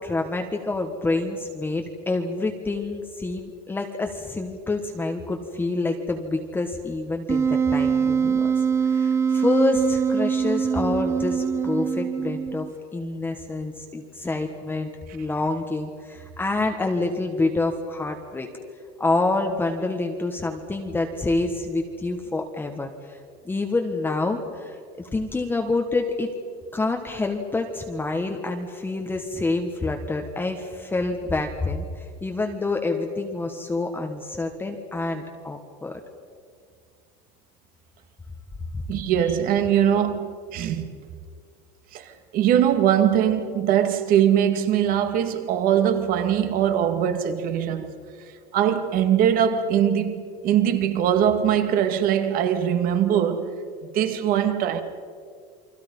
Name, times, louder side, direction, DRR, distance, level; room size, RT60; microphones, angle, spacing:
voice 1, 0.0-8.5 8.8-12.7 12.9-18.5 19.0-23.2 23.4-26.3 26.7-35.9 38.7-38.8, left 2 dB, 10° left, 1.4 m, -27 dB
Wind instrument woodwind instrument, 7.3-12.7, right 6 dB, 15° right, 0.7 m, -23 dB
voice 2, 38.9-40.8 41.9-47.9 48.5-53.5 53.9-54.8, right 9 dB, 45° right, 2.1 m, -21 dB
29.0 x 23.0 x 5.5 m
cardioid pair, 150°, 19 cm